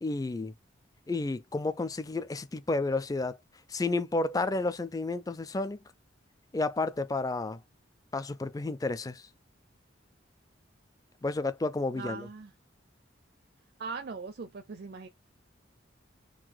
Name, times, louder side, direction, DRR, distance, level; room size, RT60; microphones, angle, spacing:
voice 1, 0.0-0.5 1.1-3.4 3.7-5.8 6.5-7.6 8.1-9.3 11.2-12.3, left 3 dB, 20° left, 0.4 m, -31 dB
voice 2, 11.9-12.5 13.8-15.1, right 4 dB, 55° right, 0.5 m, -40 dB
3.9 x 2.3 x 4.6 m
head